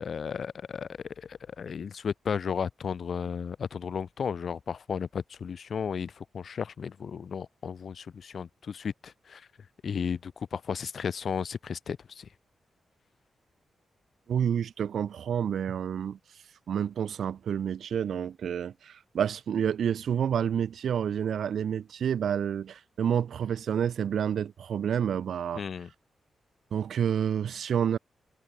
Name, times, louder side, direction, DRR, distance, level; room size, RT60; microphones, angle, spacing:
voice 1, 0.0-9.5 9.8-12.3 25.5-25.9, left 6 dB, 65° left, 1.4 m, -34 dB
voice 2, 14.3-16.2 16.7-25.6 26.7-28.0, right 8 dB, 75° right, 0.6 m, -29 dB
supercardioid pair, 45°, 0 cm